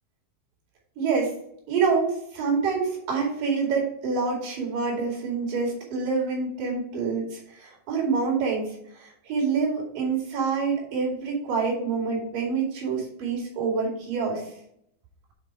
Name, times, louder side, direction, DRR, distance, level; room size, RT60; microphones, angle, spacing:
voice 1, 1.0-1.3 1.7-8.7 9.0-14.5, right 5 dB, 70° right, -4 dB, 4.2 m, -26 dB
8.0 x 3.9 x 4.6 m, 0.70 s
omnidirectional pair, 4.0 m